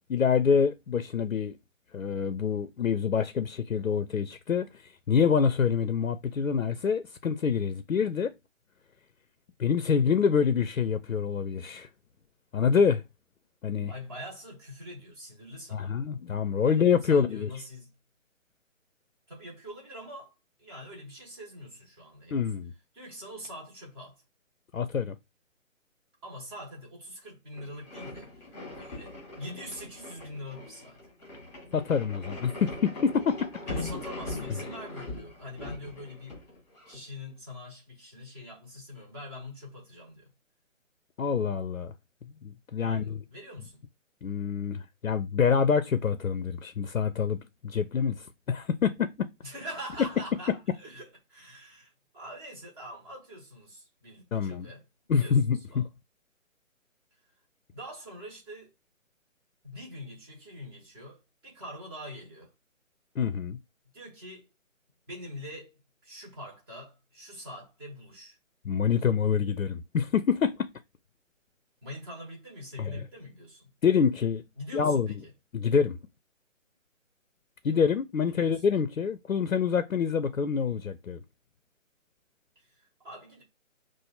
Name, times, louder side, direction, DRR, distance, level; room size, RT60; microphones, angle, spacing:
voice 1, 0.1-1.5 1.9-8.3 9.6-11.9 12.5-13.0 13.6-13.9 15.7-17.5 22.3-22.7 24.7-25.2 31.7-33.4 41.2-41.9 42.4-43.2 44.2-49.3 54.3-54.7 55.1-55.9 63.2-63.6 68.6-70.7 72.8-73.0 73.8-74.4 74.7-75.2 75.5-76.0 77.6-81.2, left 6 dB, 80° left, 0.6 m, -26 dB
voice 2, 13.9-15.9 16.6-17.9 19.3-22.4 22.9-24.2 26.2-28.5 28.7-31.0 33.7-36.4 36.9-40.3 42.8-43.8 49.4-54.8 55.1-55.4 55.7-55.9 57.7-58.7 59.6-62.5 63.9-64.5 65.1-65.7 66.0-68.4 71.8-73.7 74.6-75.3 78.3-78.6 82.5-83.4, equal, 20° right, 1.4 m, -44 dB
sound 1, 27.5-37.0, left 2 dB, 5° left, 1.8 m, -41 dB
5.8 x 2.5 x 2.4 m
figure-of-eight pair, 145°, 40 cm